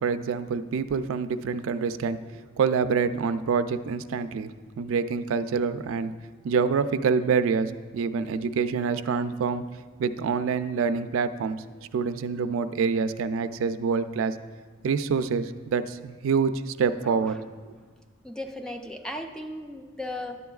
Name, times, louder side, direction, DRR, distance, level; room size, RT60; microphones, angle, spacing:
voice 1, 0.0-4.5 4.8-6.1 6.4-9.6 10.0-11.6 11.9-14.3 14.8-17.4, right 5 dB, 90° right, 10 dB, 0.3 m, -26 dB
voice 2, 17.0-17.3 18.2-20.4, left 1 dB, 5° left, 4 dB, 0.4 m, -36 dB
11.0 x 8.3 x 2.3 m, 1.4 s
head